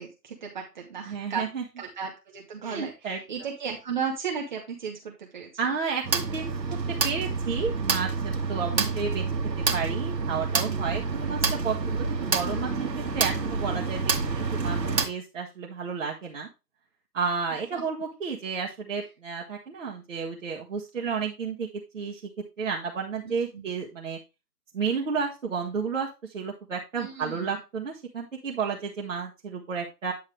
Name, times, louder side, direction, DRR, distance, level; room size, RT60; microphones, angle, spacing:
voice 1, 0.0-1.5 1.8-5.5 8.7-9.0 11.3-11.5 17.7-17.8 23.2-23.7 27.0-27.6, right 6 dB, 30° right, 0 dB, 1.2 m, -35 dB
voice 2, 1.1-1.6 2.6-3.2 5.6-9.2 9.7-14.1 14.5-14.8 15.0-16.5 17.1-21.7 21.9-22.2 22.6-24.2 24.7-30.1, right 5 dB, 50° right, -3 dB, 1.6 m, -32 dB
sound 1, 6.0-15.1, right 4 dB, 85° right, 1.7 m, -28 dB
9.9 x 5.6 x 3.3 m, 0.27 s
figure-of-eight pair, 150°, 49 cm